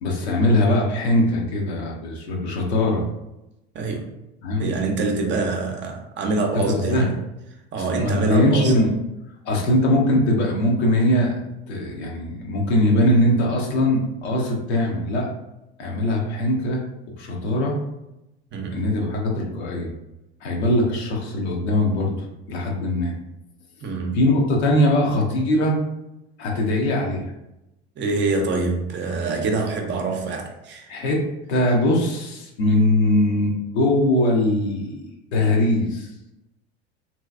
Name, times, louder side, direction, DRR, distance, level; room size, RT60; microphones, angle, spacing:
voice 1, 0.0-3.0 4.4-4.7 6.7-7.1 7.8-8.9 9.4-11.4 11.7-15.3 15.8-16.8 17.2-17.7 18.7-19.9 20.4-22.1 22.5-23.1 24.1-25.8 26.4-27.2 30.9-31.2 31.5-36.1, left 1 dB, 70° left, 0.9 m, -21 dB
voice 2, 3.7-4.1 4.6-7.2 7.7-8.7 18.5-18.8 23.8-24.2 28.0-30.9, right 3 dB, 35° right, 0.6 m, -25 dB
3.1 x 2.9 x 2.3 m
hypercardioid pair, 80°, 33 cm